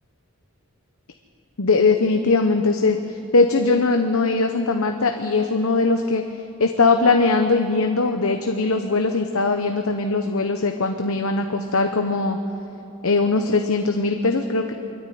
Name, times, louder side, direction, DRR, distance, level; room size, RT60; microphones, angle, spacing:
voice 1, 1.6-6.2 6.6-12.4 13.0-14.7, left 3 dB, 80° left, 5 dB, 1.0 m, -20 dB
23.5 x 13.5 x 9.3 m, 2.9 s
head